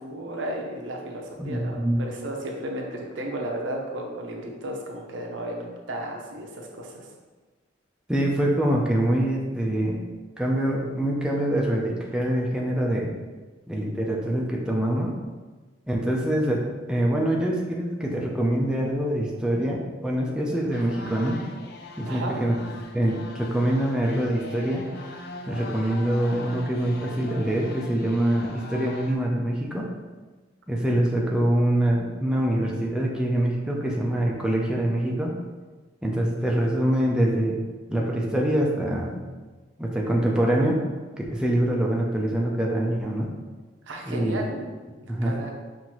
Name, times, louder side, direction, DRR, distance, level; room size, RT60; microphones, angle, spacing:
voice 1, 0.0-7.1 22.1-22.3 43.9-45.5, right 1 dB, 70° right, 0 dB, 0.7 m, -34 dB
voice 2, 1.4-2.0 8.1-10.0 10.4-13.1 13.7-15.2 15.9-16.6 16.9-21.4 22.0-22.7 22.9-24.9 25.5-29.9 30.7-35.3 36.0-37.6 37.9-39.2 39.8-40.8 41.2-43.3 44.1-44.4 45.1-45.4, right 1 dB, 5° right, -2 dB, 0.4 m, -24 dB
sound 1, 20.7-29.2, left 2 dB, 55° left, 0.5 m, -41 dB
5.6 x 2.6 x 3.0 m, 1.3 s
head